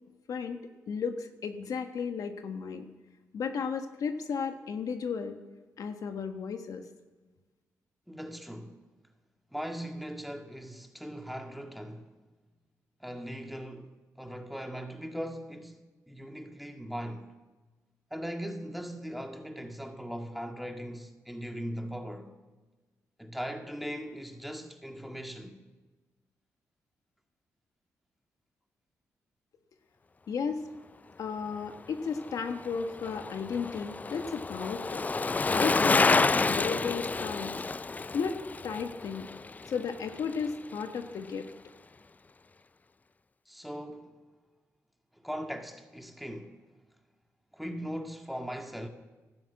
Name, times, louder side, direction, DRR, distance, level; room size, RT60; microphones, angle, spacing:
voice 1, 0.3-0.6 0.9-2.9 3.3-5.4 5.8-6.8 30.3-30.6 31.2-35.1 35.5-37.5 38.1-38.4 38.6-39.3 39.7-41.5, left 6 dB, 70° left, 1.3 m, -34 dB
voice 2, 8.1-8.8 9.5-12.1 13.0-17.3 18.1-22.3 23.2-25.6 43.5-44.2 45.1-46.6 47.5-48.9, equal, ahead, 1.9 m, -39 dB
Bicycle, 32.1-40.5 40.8-40.9, left 3 dB, 25° left, 0.4 m, -29 dB
12.5 x 12.5 x 8.4 m
cardioid pair, 65°, 6 cm